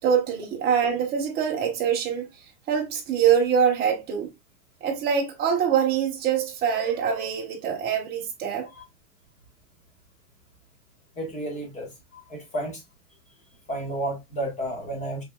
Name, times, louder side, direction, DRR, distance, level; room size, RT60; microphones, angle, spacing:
voice 1, 0.0-2.3 2.7-4.3 4.8-8.7, right 7 dB, 20° right, 1.0 m, -24 dB
voice 2, 11.2-12.8 13.7-15.2, right 1 dB, 15° left, 1.4 m, -32 dB
5.6 x 3.3 x 2.3 m
supercardioid pair, 165°, 50 cm